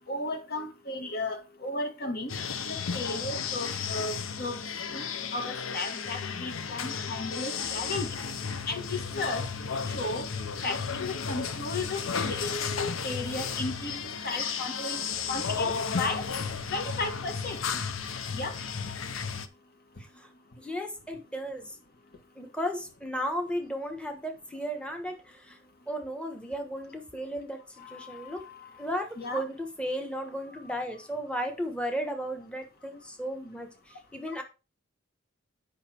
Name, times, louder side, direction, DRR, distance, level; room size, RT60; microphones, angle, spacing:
voice 1, 0.0-2.3 2.7-4.6 4.9-8.1 8.7-9.5 9.9-10.3 10.6-16.3 16.7-17.6 18.3-18.6 27.8-28.6 29.2-29.4, left 2 dB, 50° left, 1.7 m, -35 dB
sound 1, 2.3-19.5, left 6 dB, 80° left, 0.8 m, -33 dB
voice 2, 20.6-21.8 22.4-25.6 25.9-28.4 28.8-34.4, equal, 5° left, 1.3 m, -35 dB
8.4 x 5.6 x 4.5 m
head